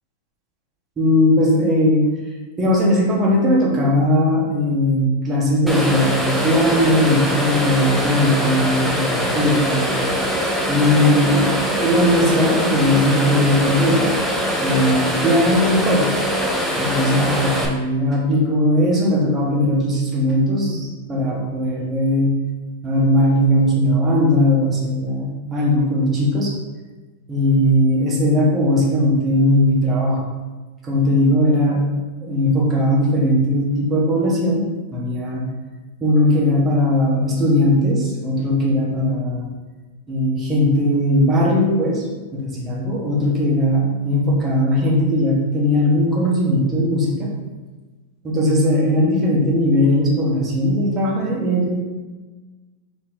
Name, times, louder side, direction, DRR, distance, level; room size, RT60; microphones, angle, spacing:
voice 1, 1.0-2.0 2.6-10.0 10.7-14.2 14.6-16.1 16.8-22.4 22.8-26.5 27.3-30.2 30.8-31.8 32.2-34.6 34.9-35.5 36.0-39.5 40.1-42.1 42.3-47.3 48.2-51.8, left 1 dB, 25° right, -3 dB, 1.3 m, -18 dB
sound 1, 5.7-17.7, equal, 5° right, 0.6 m, -22 dB
4.4 x 3.0 x 3.7 m, 1.3 s
hypercardioid pair, 120°, 0 cm